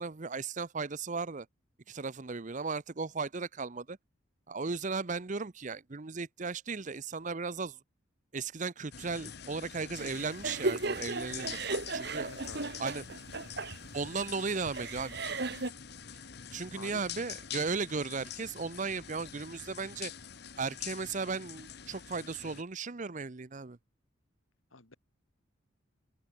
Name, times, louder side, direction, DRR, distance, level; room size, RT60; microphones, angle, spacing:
voice 1, 0.0-1.5 1.9-4.0 4.5-7.8 8.3-12.4 12.8-13.0 13.9-15.2 16.5-20.1 20.6-23.8, right 4 dB, 40° right, 0.7 m, -36 dB
sound 1, 8.9-22.6, left 8 dB, 55° left, 1.3 m, -46 dB
sound 2, 10.0-15.7, right 3 dB, 55° right, 1.9 m, -36 dB
voice 2, 12.2-12.8 16.7-17.0 24.7-25.0, left 3 dB, 90° left, 2.6 m, -49 dB
open air
head